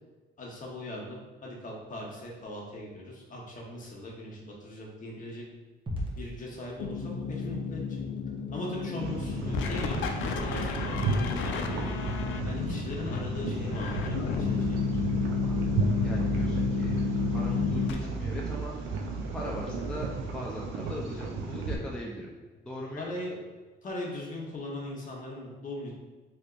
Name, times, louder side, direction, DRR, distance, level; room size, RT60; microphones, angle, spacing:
voice 1, 0.4-5.4 6.2-8.0 8.5-11.8 12.4-14.9 23.0-23.4 23.8-25.9, left 1 dB, 40° left, -3 dB, 1.0 m, -39 dB
sound 1, 5.9-24.1, left 1 dB, 25° right, 0.9 m, -49 dB
sound 2, 6.8-17.9, left 5 dB, 75° left, 0.4 m, -31 dB
sound 3, 9.0-21.8, right 3 dB, 85° right, 0.5 m, -34 dB
voice 2, 15.4-15.7 16.0-17.0 17.3-18.7 19.3-22.3 22.6-23.1, equal, 5° left, -3 dB, 0.4 m, -39 dB
3.4 x 2.8 x 2.4 m, 1.3 s
cardioid pair, 90°, 20 cm